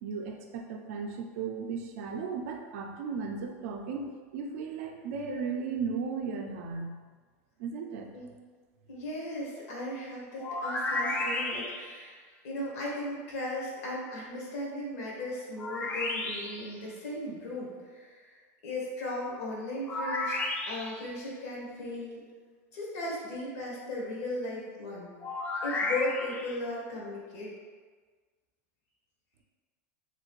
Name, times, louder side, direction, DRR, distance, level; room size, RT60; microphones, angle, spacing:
voice 1, 0.0-6.9 7.6-8.1, right 5 dB, 65° right, 3 dB, 0.4 m, -36 dB
voice 2, 8.9-12.2 12.4-20.4 20.7-22.2 22.7-25.1 25.6-27.5, left 1 dB, 70° left, -4 dB, 1.2 m, -37 dB
sound 1, 10.4-12.1 15.6-16.8 19.9-21.1 25.2-26.6, left 2 dB, 20° left, 0.4 m, -33 dB
3.1 x 2.5 x 3.0 m, 1.5 s
supercardioid pair, 125°, 8 cm